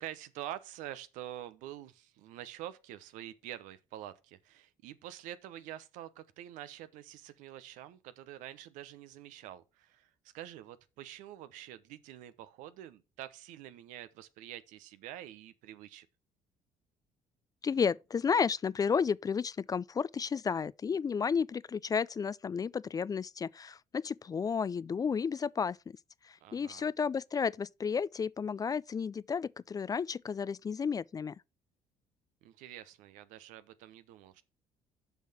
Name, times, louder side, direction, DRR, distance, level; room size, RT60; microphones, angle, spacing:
voice 1, 0.0-16.1 26.4-26.9 32.4-34.4, right 12 dB, 80° right, 0.9 m, -47 dB
voice 2, 17.6-25.8 26.2-31.4, left 6 dB, 30° left, 0.4 m, -32 dB
7.1 x 5.7 x 5.9 m
supercardioid pair, 80°, 13 cm